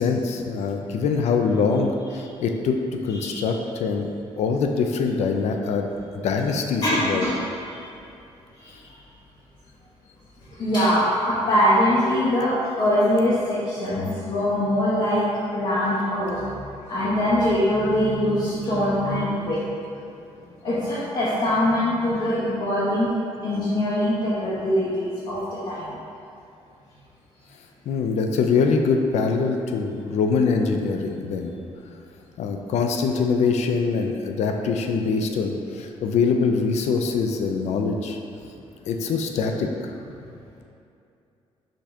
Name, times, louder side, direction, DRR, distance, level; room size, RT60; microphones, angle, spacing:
voice 1, 0.0-2.8 3.0-4.1 4.4-5.9 6.1-7.2 27.9-31.5 32.4-38.2 38.9-39.7, left 5 dB, 75° left, 4 dB, 0.4 m, -23 dB
voice 2, 3.1-3.4 6.8-7.8 8.6-8.7 10.6-15.3 15.5-16.6 16.9-19.6 20.6-23.1 23.4-25.9, left 1 dB, 50° left, -10 dB, 1.1 m, -23 dB
5.1 x 2.8 x 3.6 m, 2.6 s
cardioid pair, 105°, 11 cm